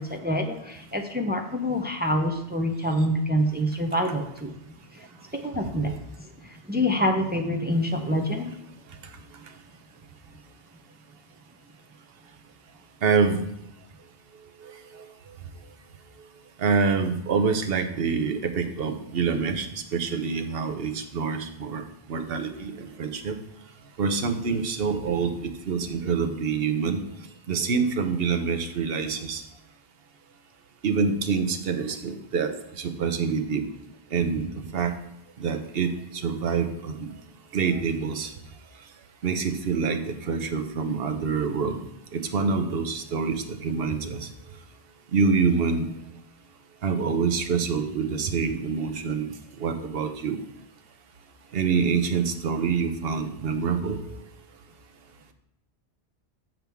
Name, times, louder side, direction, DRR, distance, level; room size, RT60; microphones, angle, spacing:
voice 1, 0.0-4.5 4.9-5.0 5.3-5.9 6.2-8.5, equal, 10° right, 3 dB, 0.5 m, -26 dB
voice 2, 13.0-13.4 16.6-21.8 22.1-23.4 24.0-27.0 27.5-29.4 30.8-33.6 34.1-34.9 35.4-35.9 36.2-37.1 37.5-38.3 39.2-41.8 42.1-44.3 45.1-45.9 46.8-49.3 49.6-50.4 51.5-54.0, right 5 dB, 65° right, 8 dB, 0.9 m, -26 dB
7.8 x 7.2 x 3.5 m, 0.82 s
omnidirectional pair, 1.1 m